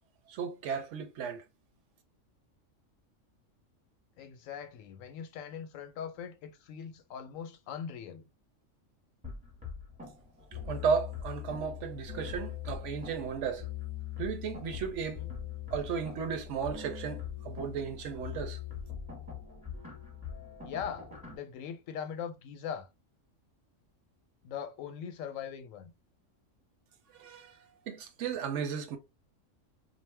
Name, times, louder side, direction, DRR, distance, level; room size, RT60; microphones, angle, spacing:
voice 1, 0.3-1.4 10.7-13.7 14.2-15.3 15.7-18.6 27.1-29.0, right 6 dB, 75° right, 0.9 m, -34 dB
voice 2, 4.2-8.2 15.2-15.3 20.6-22.9 24.4-25.9, left 8 dB, 85° left, 1.0 m, -41 dB
sound 1, 9.2-21.4, left 8 dB, 5° right, 0.9 m, -42 dB
2.5 x 2.1 x 3.2 m
omnidirectional pair, 1.3 m